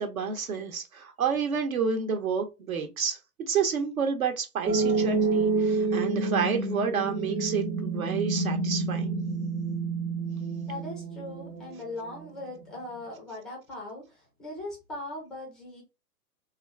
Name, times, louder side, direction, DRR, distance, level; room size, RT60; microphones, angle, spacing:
voice 1, 0.0-3.2 3.5-9.1, right 6 dB, 60° right, 0.9 m, -29 dB
sound 1, 4.7-11.6, right 3 dB, 80° right, 1.2 m, -28 dB
voice 2, 10.7-15.8, left 2 dB, ahead, 0.4 m, -40 dB
3.6 x 2.5 x 3.2 m
figure-of-eight pair, 115°, 47 cm